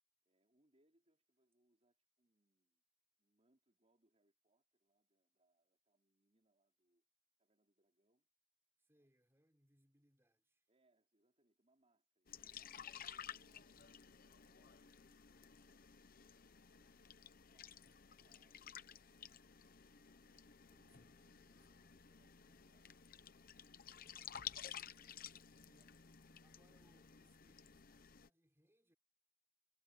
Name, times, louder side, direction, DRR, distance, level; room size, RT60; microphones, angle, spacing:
voice 1, 0.2-2.8 3.2-7.0 7.4-8.3 9.0-9.1 10.7-15.8 16.5-17.0 17.5-17.8 18.1-19.4 20.1-22.9 25.6-26.8, right 1 dB, 35° right, 4.2 m, -82 dB
voice 2, 8.8-10.6 20.7-22.0 25.6-25.9 26.4-28.9, right 1 dB, 15° right, 6.4 m, -77 dB
sound 1, 12.3-28.3, left 8 dB, 50° left, 0.9 m, -54 dB
head